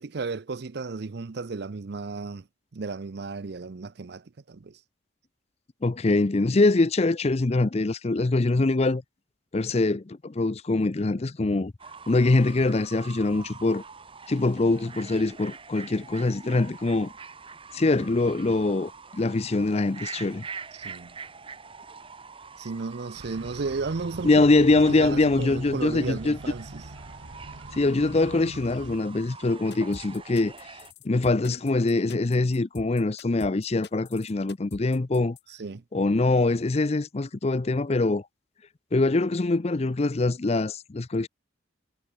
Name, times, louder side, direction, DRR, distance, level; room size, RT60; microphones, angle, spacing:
voice 1, 0.0-2.5 2.7-4.8 20.7-21.2 22.6-26.8 35.5-35.8, right 4 dB, 60° right, 0.6 m, -34 dB
voice 2, 5.8-9.0 9.5-11.7 12.1-13.8 14.3-17.1 17.7-20.5 24.2-26.4 27.7-30.5 31.0-35.4 35.9-38.2 38.9-41.3, left 2 dB, 35° left, 0.5 m, -23 dB
Fowl / Bird, 11.8-30.9, right 5 dB, 30° right, 1.5 m, -45 dB
sound 1, 23.1-29.0, right 2 dB, 75° right, 1.6 m, -44 dB
sound 2, 29.7-35.4, left 2 dB, 60° left, 3.1 m, -44 dB
head